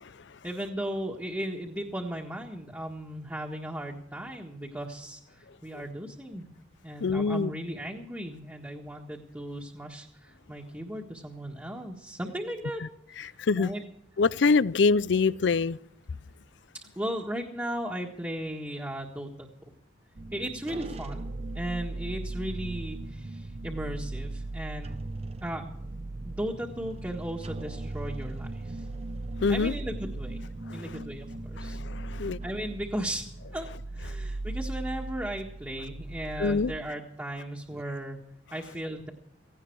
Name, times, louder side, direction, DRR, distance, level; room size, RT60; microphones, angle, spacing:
voice 1, 0.4-6.5 6.8-12.8 13.1-13.8 16.7-19.5 20.3-25.0 25.4-25.7 26.2-28.9 29.5-30.4 30.7-31.8 32.4-38.2 38.5-39.1, right 1 dB, 10° right, 1.6 m, -36 dB
voice 2, 7.0-7.5 13.2-13.7 14.2-15.8 29.4-29.7 30.7-31.0 31.6-32.4 36.4-36.7, left 4 dB, 65° left, 0.5 m, -25 dB
sound 1, 20.2-36.8 37.2-37.3 37.7-37.8, right 2 dB, 35° right, 0.7 m, -38 dB
17.0 x 17.0 x 4.7 m
head